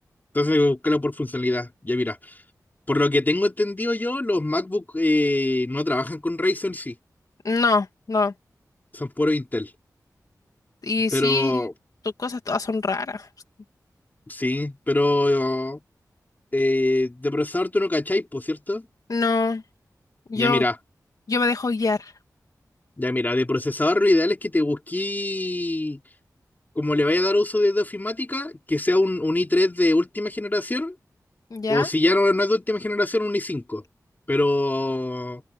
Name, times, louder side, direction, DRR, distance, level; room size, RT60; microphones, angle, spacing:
voice 1, 0.3-2.4 2.9-6.9 8.9-9.7 11.1-11.7 14.3-15.8 16.5-18.9 20.3-20.7 23.0-26.0 26.7-30.9 31.7-33.8 34.3-35.4, left 2 dB, 30° left, 3.5 m, -23 dB
voice 2, 7.4-8.3 10.8-11.7 12.2-13.3 19.1-19.6 20.3-20.6 21.3-22.1 31.5-31.9, left 3 dB, 65° left, 2.6 m, -24 dB
wide cardioid pair, 60°, 7 cm